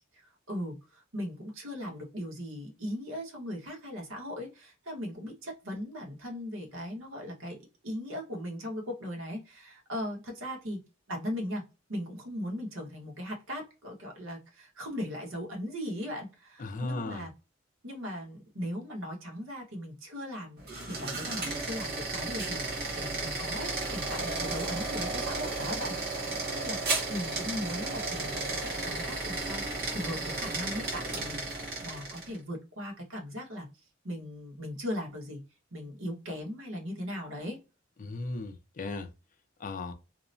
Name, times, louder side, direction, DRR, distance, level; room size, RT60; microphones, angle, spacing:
voice 1, 0.1-7.6 7.8-10.8 11.1-11.6 11.9-17.3 17.8-20.6 20.9-26.8 27.1-33.7 34.0-35.4 35.7-37.6, equal, 80° right, 1.2 m, -38 dB
voice 2, 16.6-17.3 38.0-39.1 39.6-39.9, left 2 dB, 40° left, 0.4 m, -36 dB
sound 1, 20.6-32.4, right 3 dB, 50° right, 1.1 m, -34 dB
2.8 x 2.1 x 2.6 m
head